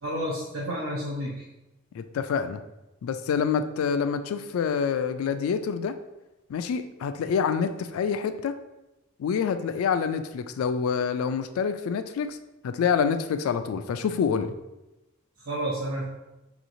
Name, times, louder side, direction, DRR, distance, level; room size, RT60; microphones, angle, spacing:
voice 1, 0.0-1.4 15.5-16.0, equal, 75° right, -6 dB, 0.7 m, -30 dB
voice 2, 1.9-2.6 3.0-6.0 6.5-8.6 9.2-12.4 12.6-14.5, left 6 dB, 80° left, 10 dB, 0.3 m, -27 dB
4.7 x 3.0 x 2.6 m, 1.0 s
head